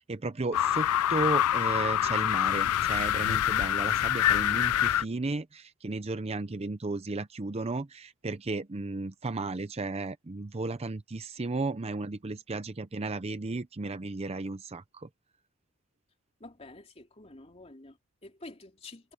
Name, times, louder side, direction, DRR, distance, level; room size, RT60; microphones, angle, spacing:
voice 1, 0.0-15.1, right 3 dB, 30° right, 0.6 m, -34 dB
sound 1, 0.5-5.0, left 11 dB, 80° left, 0.4 m, -26 dB
voice 2, 16.4-19.1, left 2 dB, 30° left, 3.2 m, -49 dB
head